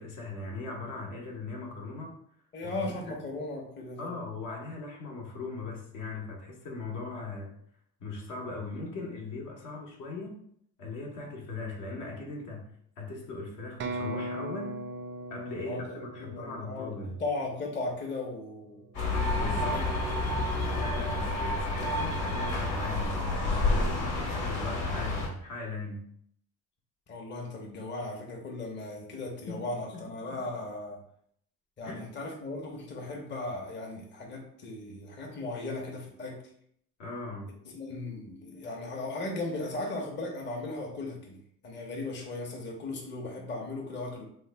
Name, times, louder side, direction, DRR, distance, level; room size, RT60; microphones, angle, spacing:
voice 1, 0.0-2.2 2.6-3.1 4.0-7.5 8.0-10.4 10.8-12.7 13.0-14.7 15.3-17.2 19.4-19.8 20.8-26.1 29.5-30.4 31.8-32.0 37.0-37.5, left 3 dB, 60° left, 0 dB, 0.9 m, -39 dB
voice 2, 2.5-4.1 15.7-18.8 19.6-20.4 27.1-31.0 31.8-36.4 37.6-41.4 41.6-44.2, left 2 dB, 30° left, 0 dB, 0.8 m, -37 dB
sound 1, 13.8-17.6, right 1 dB, 35° right, 0.4 m, -39 dB
sound 2, 18.9-25.3, left 2 dB, 85° left, 1.2 m, -29 dB
3.1 x 2.2 x 3.2 m, 0.68 s
supercardioid pair, 90°, 35 cm